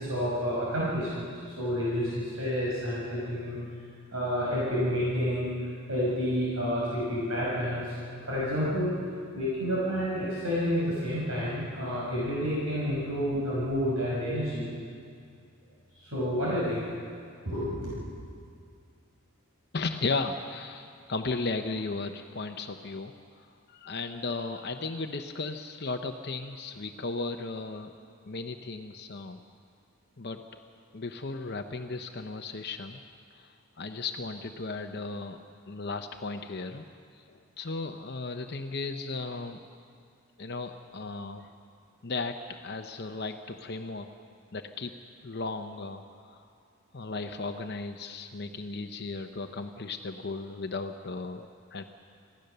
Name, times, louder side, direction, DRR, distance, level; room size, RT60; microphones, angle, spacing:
voice 1, 0.0-3.6 4.1-5.5 5.9-8.0 8.3-8.9 9.3-14.6 16.0-16.8 17.4-18.1, equal, 75° right, -7 dB, 5.5 m, -29 dB
voice 2, 19.7-23.1 23.4-27.9 28.3-29.4 30.2-30.4 30.9-33.0 33.4-35.4 35.7-36.9 37.3-39.6 40.4-41.5 42.0-44.1 44.5-44.9 45.2-46.4 46.9-51.8, left 3 dB, 50° left, 6 dB, 0.8 m, -35 dB
26.0 x 16.0 x 6.8 m, 2.3 s
head